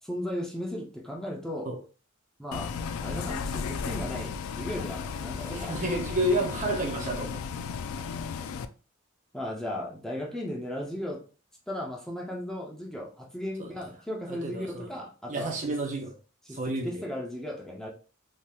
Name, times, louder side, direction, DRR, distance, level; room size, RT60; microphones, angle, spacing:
voice 1, 0.1-1.7 2.4-2.7 3.0-5.8 9.3-11.2 11.7-15.8 16.5-17.9, left 1 dB, 5° left, -2 dB, 0.5 m, -36 dB
Bus, 2.5-8.7, left 6 dB, 90° left, 0.3 m, -34 dB
voice 2, 5.5-7.4 13.6-13.7 14.3-14.9 15.3-16.1 16.5-17.1, right 1 dB, 40° right, 3 dB, 0.6 m, -30 dB
3.4 x 2.8 x 2.3 m, 0.37 s
head